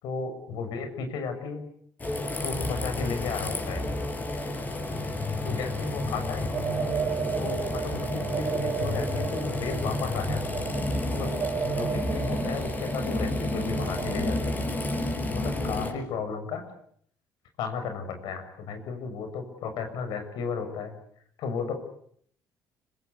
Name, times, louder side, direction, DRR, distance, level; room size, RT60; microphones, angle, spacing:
voice 1, 0.0-1.6 2.4-3.9 5.4-6.5 7.3-10.7 11.1-11.3 11.6-14.7 15.3-16.6 17.6-21.0 21.4-21.7, left 5 dB, 75° left, 7 dB, 6.8 m, -34 dB
sound 1, 2.0-15.9, left 2 dB, 25° left, 7.6 m, -31 dB
sound 2, 6.5-14.8, right 7 dB, 40° right, 3.0 m, -34 dB
26.5 x 25.5 x 8.3 m, 0.66 s
cardioid pair, 135°, 7 cm